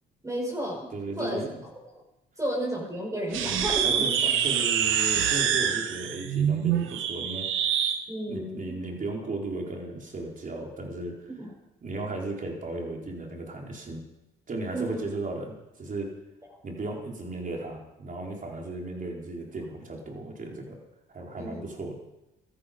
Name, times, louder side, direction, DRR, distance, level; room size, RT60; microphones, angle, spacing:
voice 1, 0.2-0.9 1.2-1.5 2.4-4.3 8.1-8.8 11.3-11.5 14.7-15.0 21.4-21.6, right 1 dB, 15° right, -2 dB, 5.7 m, -32 dB
voice 2, 0.9-1.5 3.8-4.2 4.4-7.8 8.3-11.3 11.8-14.0 14.5-16.1 16.6-20.8 21.1-22.0, right 2 dB, 40° right, 0 dB, 4.4 m, -35 dB
sound 1, 3.3-8.0, right 8 dB, 90° right, 1.3 m, -26 dB
17.0 x 13.5 x 5.2 m, 0.95 s
cardioid pair, 90°, 20 cm